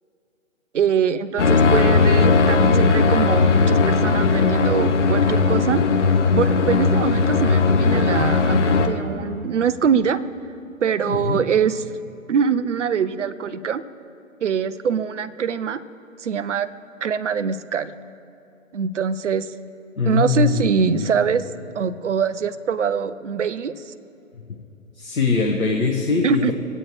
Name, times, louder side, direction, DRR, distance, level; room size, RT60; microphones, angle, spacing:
voice 1, 0.7-5.8 6.4-10.2 10.8-11.8 12.3-13.8 14.4-15.8 16.2-16.7 17.0-17.9 18.7-19.5 20.0-21.5 21.7-23.9 26.2-26.5, right 7 dB, 60° right, 13 dB, 0.6 m, -23 dB
sound 1, 1.4-8.9, left 4 dB, 55° left, 1.2 m, -17 dB
voice 2, 11.1-11.4 20.0-21.1 25.0-26.5, left 4 dB, 75° left, 1 dB, 1.3 m, -22 dB
22.5 x 8.9 x 3.1 m, 2.9 s
figure-of-eight pair, 130°, 42 cm